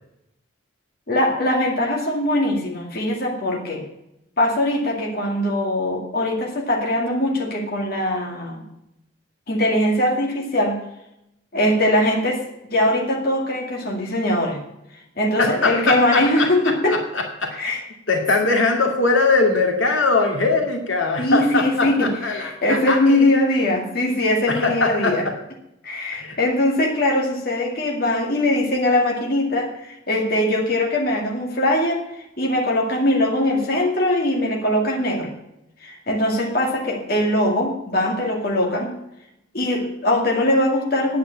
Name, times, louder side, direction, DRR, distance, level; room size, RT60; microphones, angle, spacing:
voice 1, 1.1-3.8 4.4-8.7 9.5-10.8 11.5-14.6 14.9-17.0 17.5-17.8 21.2-25.2 25.8-35.3 35.8-39.0 39.5-41.2, left 1 dB, 50° left, -1 dB, 2.2 m, -21 dB
voice 2, 15.4-17.5 18.1-23.2 24.5-25.3 26.1-26.4, left 3 dB, 75° left, 2 dB, 2.3 m, -21 dB
9.6 x 9.3 x 8.4 m, 0.84 s
head